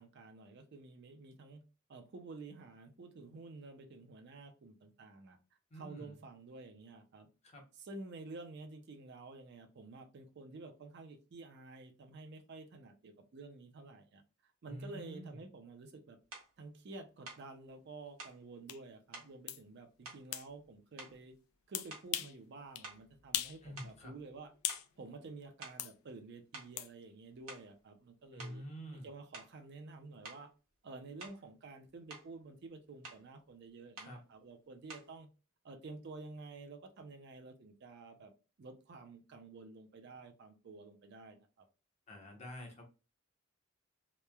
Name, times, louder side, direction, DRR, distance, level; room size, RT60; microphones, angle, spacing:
voice 1, 0.0-1.6 1.9-5.4 5.7-7.3 7.8-14.2 14.6-16.2 16.6-21.4 21.7-24.5 25.0-28.6 29.0-30.5 30.8-35.3 35.6-38.3 38.6-41.6, right 3 dB, 50° right, 0.4 m, -51 dB
voice 2, 5.7-6.1 7.4-7.6 14.6-15.4 23.6-24.1 28.3-29.1 34.0-34.2 42.1-42.8, equal, 30° left, 0.7 m, -47 dB
sound 1, 16.3-16.5 17.2-17.5 18.2-18.4 19.1-19.3 20.0-20.7 21.0-21.4 21.9-22.2 22.8-24.4 24.7-24.9 25.6-25.9 26.5-26.8 27.3-27.8 28.4-28.6 29.3-29.6 30.2-30.5 31.2-31.5 31.9-32.3 33.0-33.3 34.0-34.2 34.9-35.2, right 3 dB, 80° right, 0.9 m, -51 dB
sound 2, 18.7-18.8 19.5-19.6 20.3-20.5 21.7-22.4 22.8-22.9 23.3-23.6 23.9-24.9 25.8-25.9 26.8-26.9, left 12 dB, 75° left, 0.3 m, -38 dB
3.0 x 2.1 x 2.2 m
head